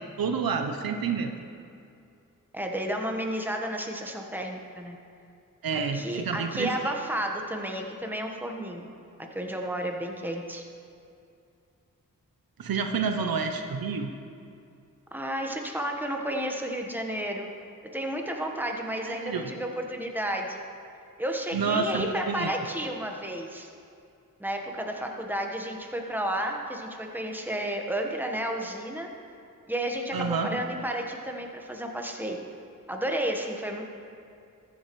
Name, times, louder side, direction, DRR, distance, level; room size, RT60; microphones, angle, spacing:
voice 1, 0.2-1.3 5.6-6.7 12.6-14.1 19.0-19.5 21.5-22.5 30.1-30.6, right 5 dB, 90° right, 5 dB, 0.7 m, -29 dB
voice 2, 2.5-5.0 5.7-8.9 9.3-10.6 15.1-17.5 17.9-20.6 21.2-23.7 24.4-29.1 29.7-32.4 32.9-33.8, right 1 dB, 5° right, 2 dB, 1.2 m, -32 dB
14.5 x 7.4 x 3.1 m, 2.5 s
cardioid pair, 45°, 34 cm